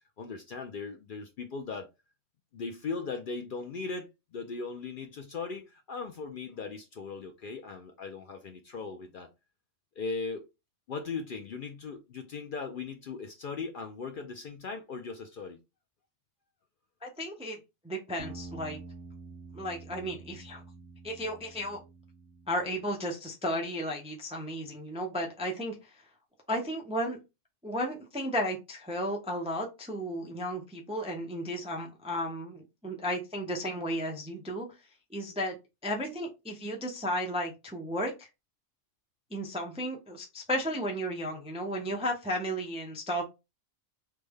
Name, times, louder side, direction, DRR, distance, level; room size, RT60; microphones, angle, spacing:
voice 1, 0.2-1.9 2.5-9.3 10.0-10.5 10.9-15.6, left 4 dB, 60° left, 0.6 m, -38 dB
voice 2, 17.0-17.6 17.8-18.8 19.5-20.6 21.0-21.8 22.5-26.0 26.5-27.2 27.6-34.7 35.1-35.6 35.8-38.3 39.3-43.2, equal, 10° right, 0.3 m, -34 dB
sound 1, 18.2-22.9, right 3 dB, 50° right, 0.9 m, -47 dB
3.3 x 2.1 x 3.4 m
omnidirectional pair, 1.2 m